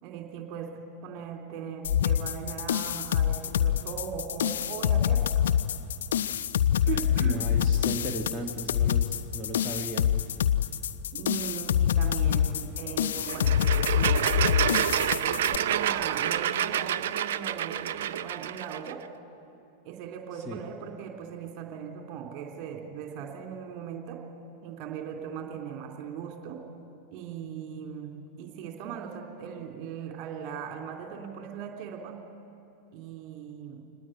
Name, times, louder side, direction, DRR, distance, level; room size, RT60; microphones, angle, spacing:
voice 1, 0.0-5.4 6.8-7.5 11.1-19.0 19.8-24.2 24.6-26.6 27.1-32.2 32.9-33.8, right 7 dB, 40° right, 3 dB, 3.3 m, -39 dB
sound 1, 1.8-15.6, left 9 dB, 60° left, 0.7 m, -26 dB
voice 2, 7.2-10.1 20.5-20.6, equal, 5° right, -2 dB, 1.9 m, -36 dB
sound 2, 13.2-18.9, right 10 dB, 60° right, 0.5 m, -28 dB
24.0 x 19.0 x 9.5 m, 2.6 s
figure-of-eight pair, 90°, 0 cm